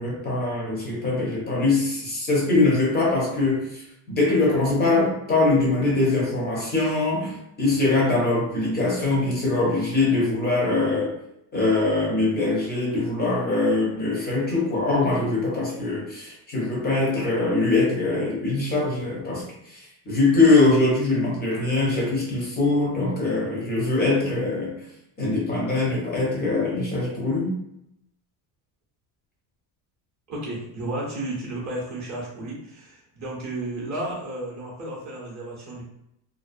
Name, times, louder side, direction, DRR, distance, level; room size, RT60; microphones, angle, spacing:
voice 1, 0.0-3.8 4.1-11.1 11.5-24.7 25.2-27.6, left 2 dB, 20° left, -3 dB, 0.4 m, -22 dB
voice 2, 30.3-35.8, right 1 dB, 35° right, -4 dB, 0.6 m, -33 dB
2.5 x 2.0 x 2.4 m, 0.81 s
cardioid pair, 155°, 50 cm